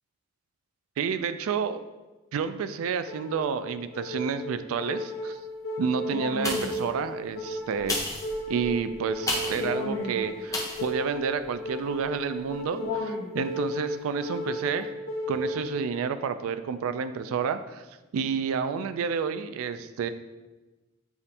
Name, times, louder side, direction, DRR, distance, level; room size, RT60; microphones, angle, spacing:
voice 1, 1.0-1.8 2.3-5.4 5.8-8.0 8.5-15.0 15.3-17.8 18.1-20.1, right 6 dB, 80° right, 11 dB, 0.3 m, -30 dB
sound 1, 3.1-16.1, left 1 dB, 75° left, 1.0 m, -34 dB
sound 2, 6.4-6.9 7.8-9.7 10.5-10.9 11.4-11.5, left 2 dB, 15° left, 0.6 m, -32 dB
7.1 x 2.6 x 2.7 m, 1.1 s
head